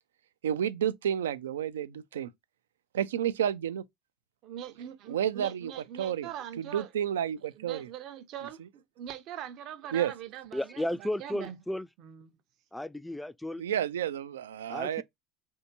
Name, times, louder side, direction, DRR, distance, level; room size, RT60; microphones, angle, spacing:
voice 1, 0.4-2.3 2.9-3.8 5.1-5.7 6.0-6.3 6.6-7.9 9.9-10.1 13.6-15.0, right 9 dB, 90° right, 0.3 m, -30 dB
voice 2, 4.4-6.9 7.6-11.6 12.0-12.3, right 10 dB, 60° right, 0.7 m, -42 dB
voice 3, 10.5-11.9 12.7-13.6 14.7-15.0, left 1 dB, 5° left, 0.3 m, -34 dB
3.4 x 2.7 x 2.6 m
hypercardioid pair, 75°, 0 cm